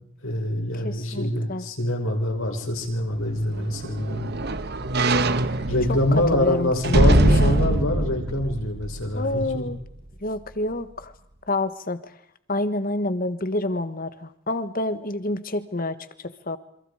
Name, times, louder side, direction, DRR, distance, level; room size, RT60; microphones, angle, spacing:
voice 1, 0.2-4.3 5.7-9.7, left 1 dB, 70° left, 1 dB, 5.8 m, -25 dB
voice 2, 0.8-1.7 5.9-7.6 9.1-9.8 10.2-11.1 11.5-12.1 12.5-16.6, left 2 dB, 40° left, 11 dB, 1.5 m, -28 dB
sound 1, 3.2-9.6 10.0-10.1, right 1 dB, 45° right, 1.3 m, -23 dB
28.5 x 27.0 x 5.0 m, 0.74 s
head